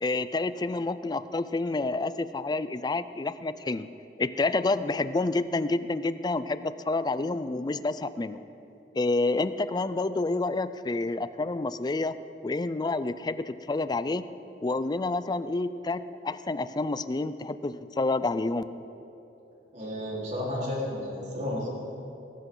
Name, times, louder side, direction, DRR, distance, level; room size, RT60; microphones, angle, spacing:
voice 1, 0.0-3.9 4.2-8.4 8.9-12.2 12.4-14.3 14.6-18.6, left 3 dB, 25° left, 13 dB, 0.4 m, -29 dB
voice 2, 19.7-21.7, left 1 dB, 40° right, -5 dB, 4.0 m, -32 dB
22.0 x 13.5 x 3.9 m, 2.9 s
head